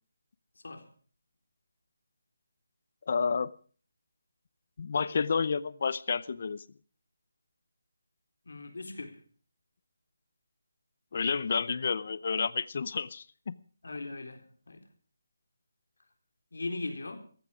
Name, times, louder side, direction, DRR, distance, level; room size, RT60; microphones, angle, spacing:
voice 1, 3.1-3.5 4.8-6.6 11.1-13.5, left 5 dB, 45° left, 18 dB, 0.7 m, -30 dB
voice 2, 8.5-9.2 13.8-14.8 16.5-17.2, left 2 dB, 75° left, 5 dB, 3.9 m, -39 dB
17.0 x 15.0 x 5.0 m, 0.43 s
hypercardioid pair, 170°, 0 cm